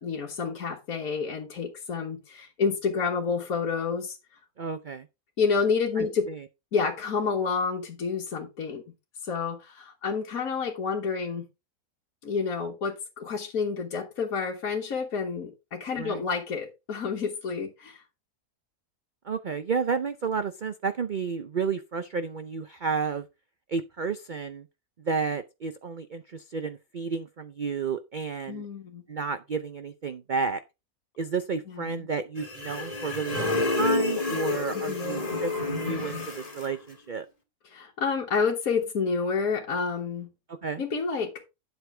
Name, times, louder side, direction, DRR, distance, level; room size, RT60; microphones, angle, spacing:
voice 1, 0.0-4.2 5.4-6.3 6.7-8.8 9.2-11.5 12.2-18.0 28.5-29.0 31.7-32.0 34.9-35.2 37.7-40.3 40.8-41.4, left 5 dB, 60° left, 2.0 m, -29 dB
voice 2, 4.6-5.1 6.0-6.4 16.0-16.2 19.2-23.3 23.7-24.7 25.0-28.7 29.1-30.6 31.2-37.3 40.5-40.8, right 5 dB, 50° right, 0.6 m, -31 dB
sound 1, 32.4-36.7, left 3 dB, 20° left, 2.1 m, -29 dB
9.5 x 8.1 x 3.3 m
omnidirectional pair, 1.7 m